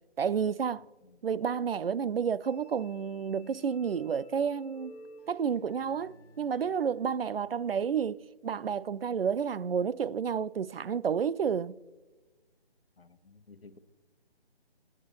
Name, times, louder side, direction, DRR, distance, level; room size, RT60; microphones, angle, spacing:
voice 1, 0.2-0.8 1.2-5.0 5.3-11.8, right 7 dB, 65° right, 0.4 m, -30 dB
sound 1, 2.4-7.7, left 2 dB, 5° left, 1.7 m, -54 dB
voice 2, 13.0-13.8, left 4 dB, 70° left, 1.1 m, -54 dB
27.0 x 9.7 x 3.1 m
figure-of-eight pair, 150°, 31 cm